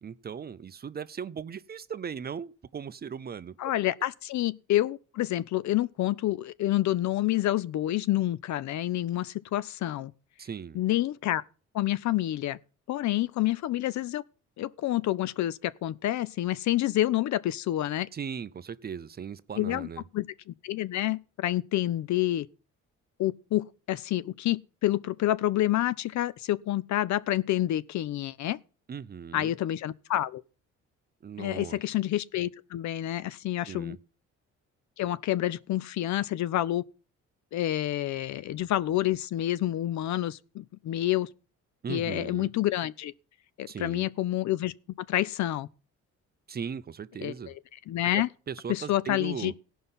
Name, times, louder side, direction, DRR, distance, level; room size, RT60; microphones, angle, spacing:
voice 1, 0.0-3.5 10.4-10.8 18.1-20.0 28.9-29.5 31.2-31.8 33.7-34.0 41.8-42.5 43.7-44.1 46.5-47.5 48.1-49.5, right 7 dB, 30° right, 0.5 m, -38 dB
voice 2, 3.6-10.1 10.7-11.4 11.7-12.6 12.9-14.2 14.6-18.1 19.6-19.9 20.1-22.5 23.2-28.6 29.3-30.4 31.4-34.0 35.0-36.8 37.5-41.3 41.9-43.1 43.6-44.7 45.1-45.7 47.2-47.6 47.9-48.3 48.7-49.5, left 14 dB, 65° left, 0.6 m, -28 dB
16.5 x 5.5 x 5.6 m
cardioid pair, 90°, 30 cm